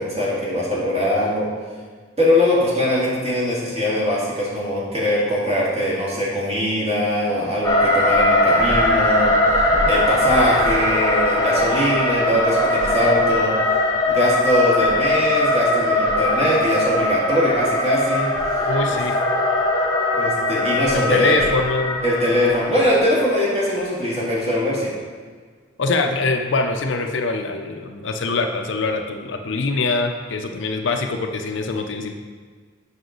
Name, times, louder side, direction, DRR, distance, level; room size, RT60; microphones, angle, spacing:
voice 1, 0.0-1.5 2.2-9.3 9.9-13.5 14.1-18.3 18.9-19.0 20.2-21.6 22.0-24.9, left 1 dB, 30° right, -7 dB, 2.1 m, -21 dB
sound 1, 7.6-23.7, left 1 dB, 20° left, 0.9 m, -20 dB
voice 2, 18.6-19.2 20.9-22.1 25.8-32.1, left 3 dB, 65° left, 5 dB, 0.6 m, -23 dB
7.8 x 5.8 x 3.9 m, 1.5 s
head